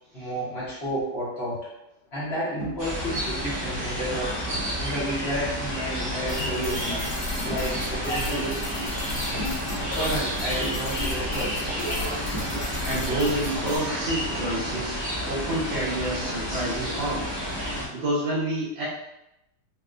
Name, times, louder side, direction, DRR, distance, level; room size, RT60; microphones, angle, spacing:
voice 1, 0.1-1.6 2.1-4.4 4.8-6.8 7.4-8.6 9.6-11.6, equal, 45° left, -9 dB, 0.9 m, -31 dB
sound 1, 0.6-0.9 2.6-2.9 4.5-4.8 5.9-6.1 7.5-7.9 9.3-10.2 10.5-10.6 12.3-12.9, equal, 60° left, 1.4 m, -36 dB
sound 2, 2.8-17.9, equal, 35° right, 0.4 m, -30 dB
sound 3, 6.3-13.8, left 1 dB, 80° left, 1.8 m, -34 dB
voice 2, 12.8-15.0 15.2-17.3 17.9-18.9, right 1 dB, 75° right, -7 dB, 1.9 m, -28 dB
4.6 x 2.1 x 2.4 m, 0.87 s
omnidirectional pair, 2.2 m